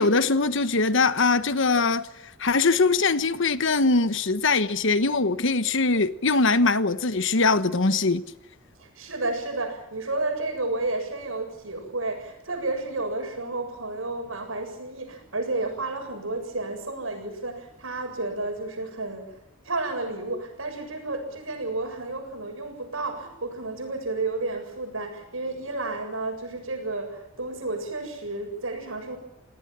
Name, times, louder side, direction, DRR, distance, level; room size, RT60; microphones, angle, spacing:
voice 1, 0.0-2.1 2.4-8.2, left 3 dB, 65° left, 1.2 m, -22 dB
voice 2, 8.8-19.3 19.6-29.2, right 2 dB, 85° right, 7.5 m, -31 dB
29.0 x 18.5 x 7.6 m
head